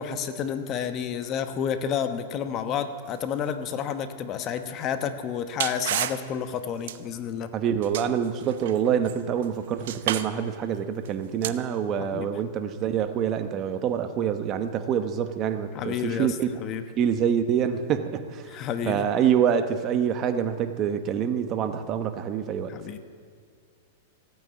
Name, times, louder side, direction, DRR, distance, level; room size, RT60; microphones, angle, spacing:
voice 1, 0.0-7.5 12.0-12.3 15.7-16.8 18.5-19.1 22.7-23.0, left 8 dB, 35° left, 9 dB, 1.0 m, -30 dB
sound 1, 4.8-4.9 5.6-6.2 6.9-7.0 7.8-9.5 9.8-10.3 11.1-11.2 11.4-11.5, right 12 dB, 65° right, 0.8 m, -31 dB
voice 2, 7.5-16.5 17.0-18.5 18.9-22.7, right 8 dB, 30° right, 9 dB, 1.0 m, -26 dB
16.5 x 9.1 x 8.9 m, 2.1 s
supercardioid pair, 145°, 0 cm